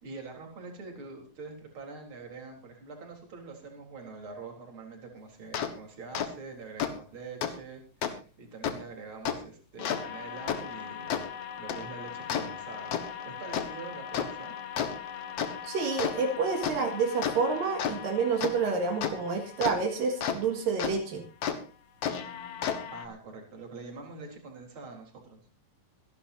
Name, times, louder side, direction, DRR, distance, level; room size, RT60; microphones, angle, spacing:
voice 1, 0.0-13.0 13.2-14.5 22.9-25.4, right 4 dB, 35° right, 1 dB, 4.5 m, -45 dB
sound 1, 5.5-5.7 6.1-6.3 6.8-6.9 7.4-7.5 8.0-8.1 8.6-8.7 9.2-9.4 9.8-20.4 20.8-20.9 21.4-21.6 22.0-23.1, left 8 dB, 55° left, 2.2 m, -34 dB
voice 2, 15.6-21.2, right 5 dB, 80° right, 2 dB, 3.7 m, -29 dB
25.5 x 11.5 x 2.7 m, 0.33 s
omnidirectional pair, 4.0 m